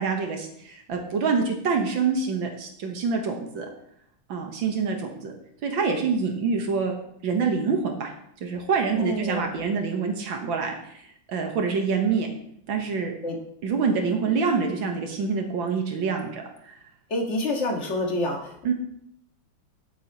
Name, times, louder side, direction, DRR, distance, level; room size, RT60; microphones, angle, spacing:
voice 1, 0.0-3.7 4.3-5.3 5.6-6.9 7.2-8.1 8.4-12.3 12.7-13.1 13.6-16.7 18.6-18.7, right 5 dB, 85° right, 2 dB, 2.1 m, -26 dB
voice 2, 9.0-9.5 13.2-13.4 17.1-18.5, left 1 dB, 35° left, 0 dB, 2.1 m, -27 dB
16.5 x 8.5 x 3.1 m, 0.73 s
omnidirectional pair, 2.1 m